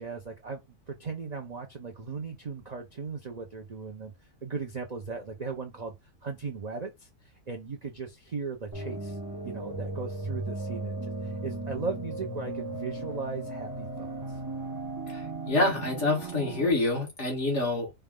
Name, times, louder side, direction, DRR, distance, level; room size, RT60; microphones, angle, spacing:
voice 1, 0.0-4.1 4.4-5.9 6.2-9.2 9.4-14.4, right 4 dB, 80° right, 0.3 m, -37 dB
sound 1, 8.7-16.7, right 2 dB, 20° right, 0.5 m, -36 dB
voice 2, 15.1-17.9, left 2 dB, 45° left, 1.9 m, -27 dB
4.5 x 2.2 x 3.6 m
omnidirectional pair, 1.7 m